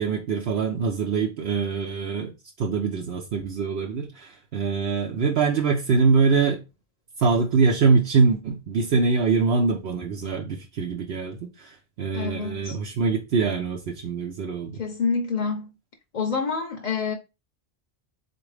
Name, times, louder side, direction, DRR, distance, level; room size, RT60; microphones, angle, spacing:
voice 1, 0.0-2.3 2.6-6.6 7.2-14.8, right 4 dB, 75° right, 0.9 m, -24 dB
voice 2, 12.1-12.8 14.8-15.7 16.1-17.1, left 5 dB, 50° left, 0.6 m, -27 dB
3.9 x 2.6 x 4.7 m
omnidirectional pair, 1.1 m